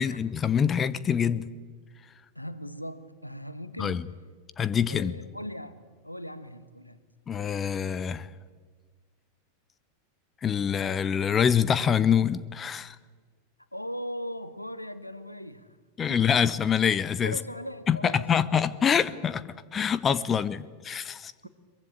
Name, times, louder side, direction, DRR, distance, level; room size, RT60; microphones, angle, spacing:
voice 1, 0.0-1.5 3.8-4.0 4.6-5.1 7.3-8.3 10.4-13.0 16.0-17.4 17.9-19.4 19.7-21.3, left 7 dB, 20° left, 17 dB, 0.8 m, -25 dB
voice 2, 2.3-4.1 4.8-7.0 13.7-15.8 17.2-18.8 21.4-21.5, equal, 85° left, 12 dB, 1.4 m, -39 dB
23.0 x 22.5 x 8.5 m, 1.5 s
figure-of-eight pair, 90°, 0 cm